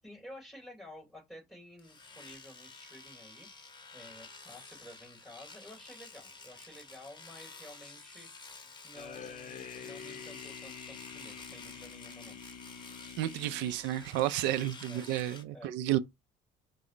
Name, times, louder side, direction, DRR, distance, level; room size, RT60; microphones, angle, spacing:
voice 1, 0.0-3.5 3.9-8.3 8.5-12.4 14.9-15.0 15.5-15.7, left 1 dB, ahead, 3.1 m, -52 dB
Domestic sounds home sounds, 1.8-15.4, left 3 dB, 25° left, 1.0 m, -51 dB
sound 1, 9.0-14.2, left 7 dB, 45° left, 0.6 m, -47 dB
voice 2, 13.2-16.0, right 13 dB, 80° right, 0.4 m, -31 dB
4.9 x 2.0 x 4.3 m
supercardioid pair, 75°, 18 cm